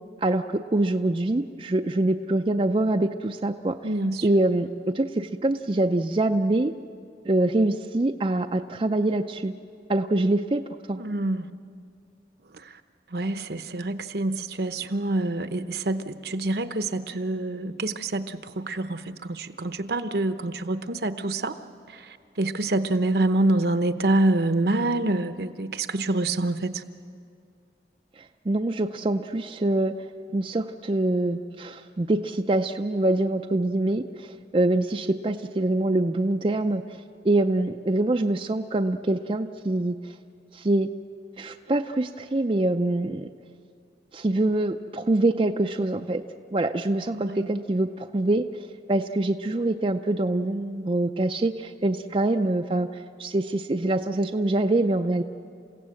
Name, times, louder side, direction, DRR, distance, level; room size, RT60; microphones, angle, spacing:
voice 1, 0.2-3.9 4.2-4.7 4.9-6.7 7.3-9.5 9.9-10.6 10.9-11.0 28.5-29.9 30.3-37.0 37.2-39.9 40.5-40.9 41.4-43.3 44.1-46.2 46.5-48.4 48.9-55.2, right 2 dB, 30° right, 6 dB, 0.5 m, -24 dB
voice 2, 3.8-4.3 11.0-11.5 12.6-12.7 13.1-21.6 21.9-26.8 47.1-47.5, right 2 dB, 65° right, 10 dB, 0.9 m, -26 dB
28.5 x 16.5 x 7.7 m, 2.3 s
head